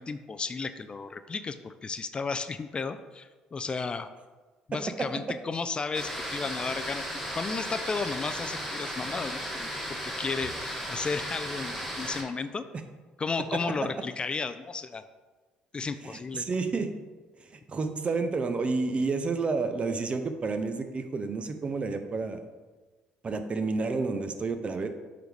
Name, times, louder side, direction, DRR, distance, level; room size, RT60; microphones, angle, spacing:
voice 1, 0.0-4.1 4.7-7.0 7.3-12.6 13.2-15.0 15.7-16.4, left 4 dB, 30° left, 11 dB, 0.3 m, -33 dB
sound 1, 5.9-12.2, equal, 5° right, 2.0 m, -35 dB
voice 2, 16.0-16.9 17.4-22.4 23.2-24.9, right 4 dB, 40° right, 8 dB, 0.6 m, -30 dB
7.8 x 3.9 x 3.3 m, 1.3 s
supercardioid pair, 70°, 3 cm